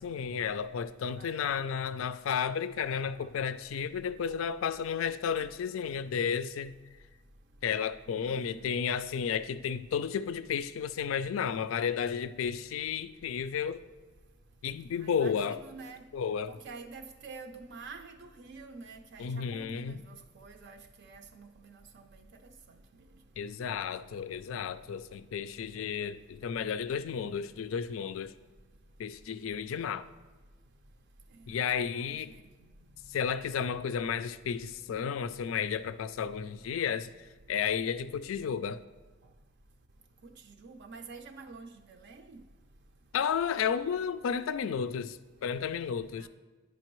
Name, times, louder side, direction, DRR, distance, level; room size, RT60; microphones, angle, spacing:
voice 1, 0.0-6.7 7.6-13.8 14.6-15.6 16.1-16.5 19.2-20.0 23.4-28.3 29.0-30.1 31.5-32.3 33.1-37.1 37.5-38.8 43.1-46.3, left 7 dB, 80° left, 0.3 m, -32 dB
voice 2, 1.2-1.5 3.0-3.3 4.3-4.4 8.1-8.7 14.9-16.0 16.5-22.3 31.3-32.4 40.4-42.4 46.2-46.3, right 4 dB, 60° right, 0.4 m, -48 dB
10.5 x 5.1 x 3.0 m
head